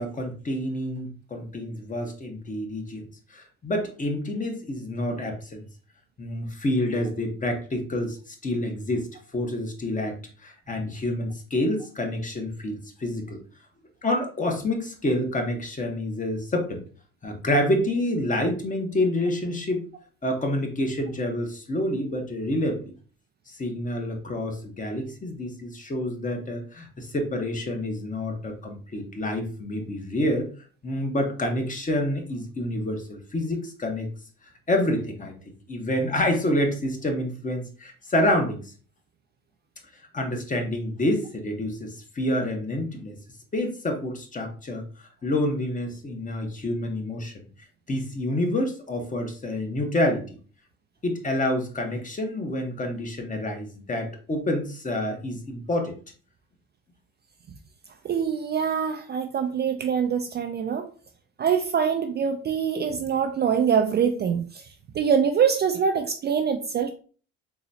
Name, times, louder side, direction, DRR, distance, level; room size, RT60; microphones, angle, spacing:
voice 1, 0.0-5.6 6.2-9.1 9.3-13.4 14.0-16.8 17.2-19.8 20.2-22.8 23.5-30.5 30.8-34.1 34.7-35.3 35.7-38.6 40.1-43.2 43.5-44.8 45.2-47.5 47.9-50.4 51.0-56.0, left 1 dB, 25° left, 4 dB, 1.0 m, -28 dB
voice 2, 58.0-60.9 61.4-64.7 64.9-66.9, right 7 dB, 35° right, 6 dB, 0.4 m, -24 dB
3.9 x 3.0 x 2.7 m, 0.39 s
supercardioid pair, 90°, 31 cm